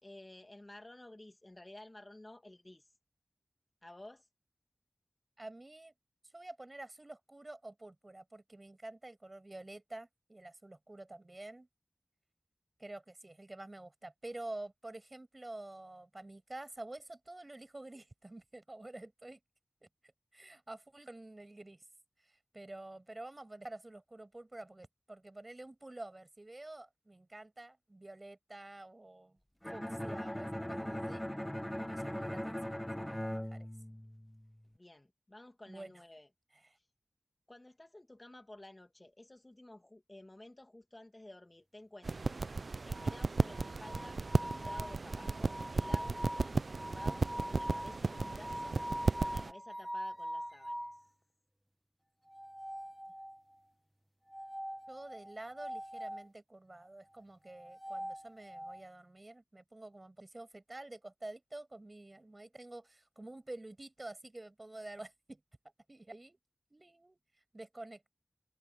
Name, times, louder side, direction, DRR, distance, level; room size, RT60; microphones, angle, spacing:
voice 1, 0.0-2.8 3.8-4.3 34.7-36.3 37.5-42.4 42.8-48.8 49.2-50.8, left 1 dB, 30° left, 2.4 m, -53 dB
voice 2, 5.4-5.9 6.3-11.7 12.8-19.4 19.8-19.9 20.3-21.9 22.2-29.4 29.7-31.3 31.9-33.7 35.7-36.0 36.5-36.8 54.9-65.4 65.9-66.4 66.7-67.2 67.5-68.1, right 2 dB, 35° right, 7.0 m, -49 dB
Bowed string instrument, 29.6-34.6, equal, 10° left, 1.3 m, -40 dB
sound 1, 42.0-49.5, right 3 dB, 75° right, 0.4 m, -35 dB
sound 2, 42.9-51.0 52.3-53.5 54.3-56.3 57.5-58.8, equal, 5° right, 1.2 m, -43 dB
wide cardioid pair, 60°, 0 cm